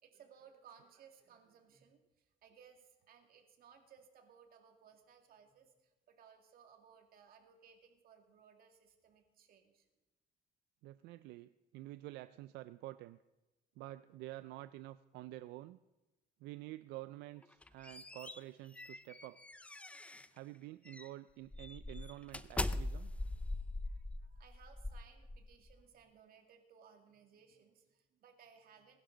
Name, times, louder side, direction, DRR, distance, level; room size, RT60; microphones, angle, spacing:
voice 1, 0.0-9.9 23.8-29.0, right 7 dB, 60° right, 4 dB, 2.2 m, -62 dB
voice 2, 10.8-13.2 13.8-15.8 16.4-19.4 20.3-23.1, right 17 dB, 85° right, 14 dB, 0.4 m, -49 dB
sound 1, 17.4-20.4 20.9-21.1 21.5-25.8, left 2 dB, 5° left, 0.5 m, -42 dB
20.5 x 11.5 x 3.9 m, 1.1 s
cardioid pair, 110°, 17 cm